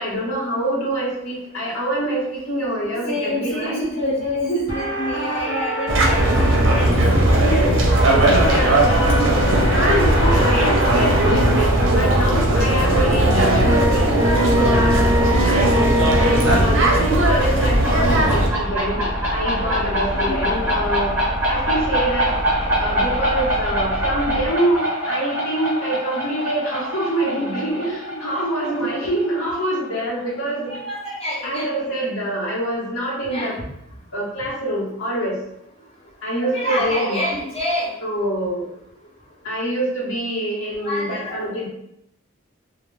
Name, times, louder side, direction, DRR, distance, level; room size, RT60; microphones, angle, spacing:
voice 1, 0.0-4.0 7.3-7.7 8.2-9.3 9.7-14.1 14.6-15.6 16.1-21.1 21.5-22.3 22.8-30.7 31.4-33.5 34.1-35.4 36.2-37.2 38.0-38.7 39.4-41.7, right 1 dB, 75° left, -6 dB, 1.0 m, -25 dB
voice 2, 3.1-7.0 7.7-7.8 12.7-12.9 20.2-20.4 27.9-28.0 28.4-28.5 30.7-31.7 33.3-33.5 36.4-38.0 40.8-41.5, left 1 dB, 25° left, -8 dB, 0.7 m, -27 dB
sound 1, 4.7-7.2 8.0-11.4 12.0-12.1 13.2-24.5, equal, 50° left, 0.9 m, -26 dB
sound 2, 5.9-18.5, right 1 dB, 55° right, 0.5 m, -17 dB
sound 3, 17.0-30.4, equal, 15° right, 0.7 m, -25 dB
2.2 x 2.1 x 3.1 m, 0.78 s
head